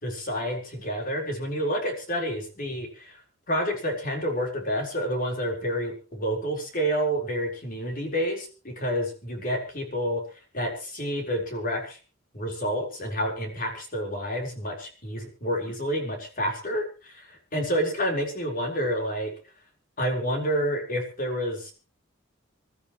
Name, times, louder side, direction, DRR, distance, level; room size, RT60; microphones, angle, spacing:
voice 1, 0.0-3.2 3.5-10.2 10.5-12.0 12.3-19.3 20.0-21.7, equal, 45° left, 3 dB, 4.3 m, -29 dB
27.0 x 13.0 x 3.1 m, 0.36 s
head